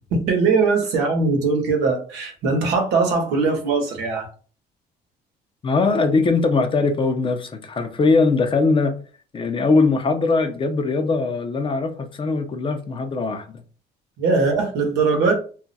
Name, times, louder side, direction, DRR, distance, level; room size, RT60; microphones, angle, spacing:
voice 1, 0.1-4.3 14.2-15.3, right 4 dB, 85° right, 1.0 m, -20 dB
voice 2, 5.6-8.9 9.3-13.6, left 3 dB, 30° left, 0.5 m, -21 dB
2.3 x 2.1 x 3.9 m
cardioid pair, 110°, 17 cm